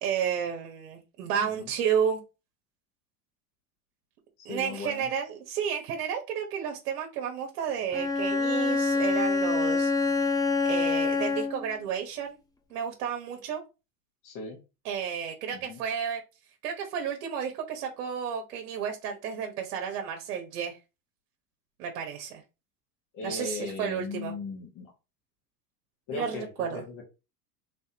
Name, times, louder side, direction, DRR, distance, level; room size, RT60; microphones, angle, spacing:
voice 1, 0.0-2.2 4.4-9.9 10.6-12.4 12.7-13.6 14.8-16.2 16.6-20.8 21.8-22.4 23.2-24.3 26.1-26.8, right 8 dB, 75° right, 3 dB, 1.3 m, -32 dB
voice 2, 4.4-5.1 14.2-14.6 15.5-15.8 23.1-24.9 26.1-27.0, left 4 dB, 45° left, -1 dB, 1.8 m, -38 dB
Bowed string instrument, 7.9-11.7, left 3 dB, 10° left, 0.6 m, -26 dB
3.9 x 3.5 x 2.9 m, 0.28 s
supercardioid pair, 105°, 45 cm